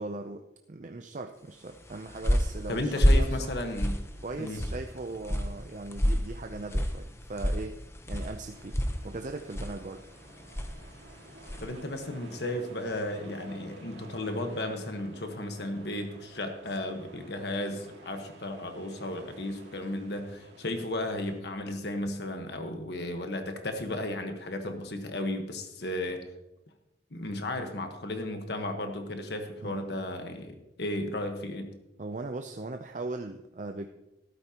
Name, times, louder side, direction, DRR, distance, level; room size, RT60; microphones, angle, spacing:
voice 1, 0.0-3.5 4.2-7.8 8.1-8.8 9.0-10.1 29.6-30.0 32.0-33.9, right 2 dB, 45° right, 6 dB, 0.5 m, -39 dB
sound 1, 1.7-11.8, equal, 15° left, 0.8 m, -30 dB
voice 2, 2.7-4.0 4.4-4.6 11.6-26.2 27.1-31.8, left 1 dB, 65° left, 5 dB, 1.3 m, -34 dB
sound 2, 8.5-21.4, right 2 dB, 85° right, 2.0 m, -52 dB
13.5 x 12.5 x 2.9 m, 0.93 s
head